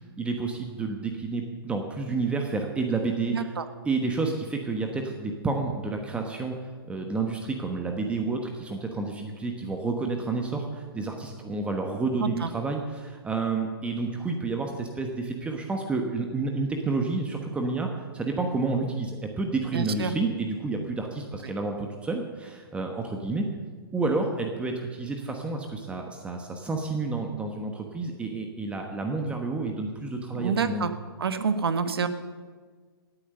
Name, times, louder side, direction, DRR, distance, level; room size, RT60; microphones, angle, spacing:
voice 1, 0.2-3.5 3.8-6.5 6.8-17.9 18.1-23.5 23.9-30.9, right 3 dB, 10° right, 3 dB, 1.1 m, -30 dB
voice 2, 3.3-3.7 12.2-12.5 19.7-20.1 30.3-30.9 31.2-32.1, right 5 dB, 75° right, 10 dB, 1.3 m, -27 dB
17.5 x 8.9 x 6.7 m, 1.5 s
hypercardioid pair, 140°, 13 cm